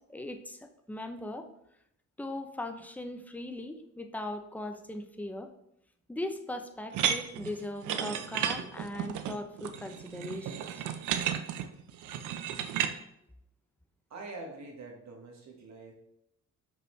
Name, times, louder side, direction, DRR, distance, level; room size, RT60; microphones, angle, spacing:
voice 1, 0.0-1.5 2.2-5.5 6.1-10.8, left 1 dB, 5° left, 6 dB, 0.6 m, -39 dB
sound 1, 6.9-12.9, right 9 dB, 85° right, 0.6 m, -33 dB
voice 2, 14.1-15.9, right 2 dB, 65° right, 1 dB, 1.6 m, -45 dB
6.2 x 5.4 x 3.2 m, 0.78 s
cardioid pair, 90°, 30 cm